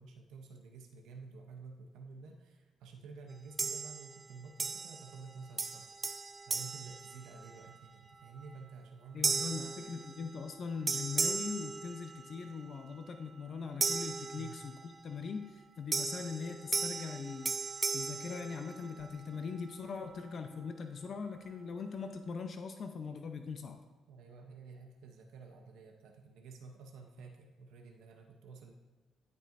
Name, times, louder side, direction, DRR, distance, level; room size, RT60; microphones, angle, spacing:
voice 1, 0.0-5.9 6.5-9.7 14.3-14.6 24.1-28.7, right 4 dB, 85° right, 3 dB, 0.8 m, -51 dB
sound 1, 3.6-4.2 4.6-5.3 5.6-7.7 8.3-8.5 9.2-10.6 10.9-12.5 13.8-15.0 15.9-19.2, right 4 dB, 30° right, 0.4 m, -36 dB
voice 2, 9.1-23.8, left 5 dB, 55° left, 6 dB, 0.6 m, -41 dB
11.5 x 5.5 x 2.6 m, 1.3 s
cardioid pair, 90°, 0 cm